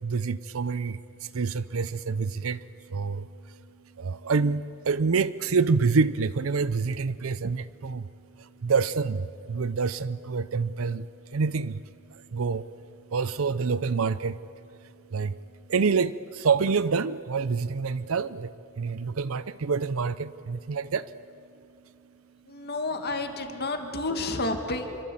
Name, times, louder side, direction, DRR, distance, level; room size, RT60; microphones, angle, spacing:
voice 1, 0.0-2.6 2.9-3.6 4.0-8.1 8.4-11.8 12.1-12.7 13.1-14.4 15.1-15.4 15.7-18.5 18.8-21.1, right 5 dB, 70° right, 15 dB, 0.6 m, -27 dB
voice 2, 22.5-25.0, left 2 dB, 50° left, 5 dB, 2.4 m, -30 dB
27.5 x 25.0 x 8.8 m, 2.7 s
head